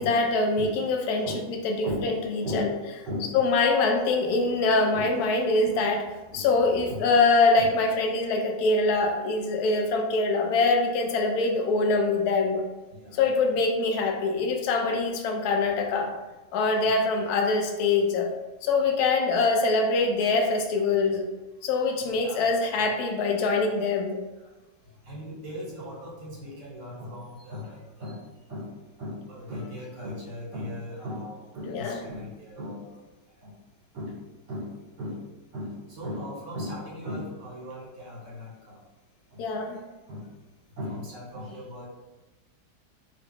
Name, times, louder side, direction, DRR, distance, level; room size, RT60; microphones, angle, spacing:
voice 1, 0.0-2.7 3.3-6.1 6.3-12.6 13.1-16.2 16.5-18.3 18.6-21.3 21.6-24.2 31.7-32.0 39.4-39.8, left 3 dB, 70° left, 2 dB, 1.1 m, -24 dB
voice 2, 22.2-22.9 25.1-28.2 28.5-28.7 29.0-32.9 33.4-33.5 33.9-34.1 34.5-34.7 35.0-35.2 35.5-38.8 39.3-39.4 40.1-40.2 40.8-41.9, left 1 dB, 80° right, -4 dB, 2.0 m, -37 dB
3.7 x 2.7 x 3.6 m, 1.1 s
omnidirectional pair, 1.8 m